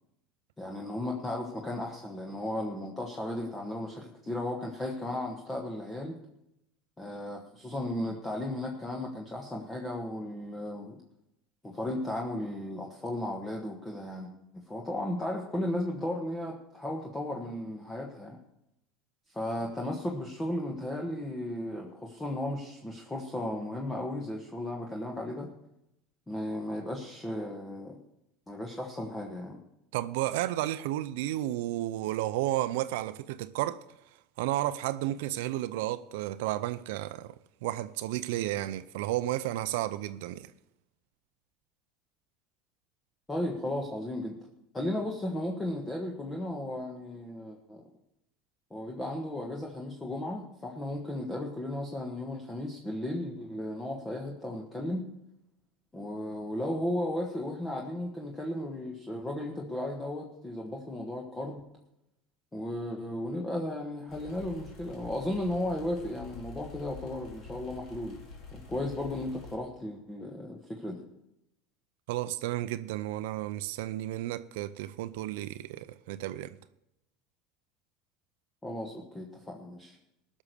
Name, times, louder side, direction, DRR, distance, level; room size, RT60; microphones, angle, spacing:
voice 1, 0.6-6.2 7.0-11.0 11.6-18.4 19.3-25.5 26.3-28.0 28.5-29.6 43.3-44.4 44.7-47.8 48.7-55.1 55.9-61.6 62.5-68.2 68.5-71.0 78.6-80.0, left 1 dB, 15° left, 1.5 m, -35 dB
voice 2, 29.9-33.8 34.4-37.3 37.6-40.5 72.1-76.6, right 15 dB, 80° right, 0.5 m, -32 dB
old ventilator, 64.1-69.6, left 4 dB, 50° left, 2.8 m, -47 dB
15.5 x 6.3 x 6.8 m
supercardioid pair, 115°, 0 cm